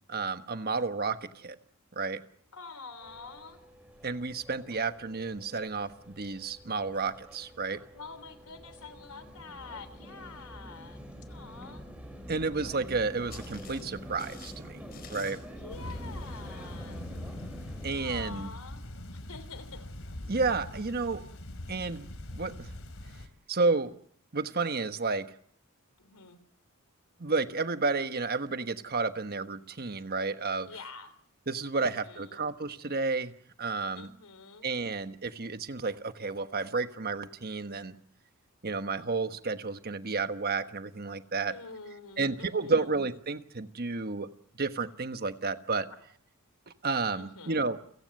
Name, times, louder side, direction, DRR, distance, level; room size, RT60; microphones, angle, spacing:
voice 1, 0.1-1.6 1.9-2.2 4.0-7.8 12.3-14.8 15.1-15.4 17.8-18.5 20.3-21.2 21.7-22.7 23.5-23.9 24.3-25.3 27.2-30.7 31.5-33.3 33.6-34.1 34.6-38.0 38.6-41.5 42.2-44.3 44.6-45.9 46.7-47.8, right 4 dB, 45° right, 9 dB, 1.3 m, -31 dB
voice 2, 2.5-3.6 7.9-11.9 15.5-17.1 17.9-19.8 26.0-26.4 30.6-31.1 31.7-32.4 34.0-34.7 41.5-42.9 45.9-46.0 47.1-47.6, left 4 dB, 90° left, 13 dB, 3.2 m, -47 dB
sound 1, 3.0-18.1, equal, 5° right, 5.2 m, -47 dB
sound 2, 12.8-17.2, left 6 dB, 45° left, 4.5 m, -54 dB
sound 3, 15.7-23.3, left 1 dB, 65° left, 2.9 m, -42 dB
29.5 x 17.0 x 7.8 m, 0.63 s
head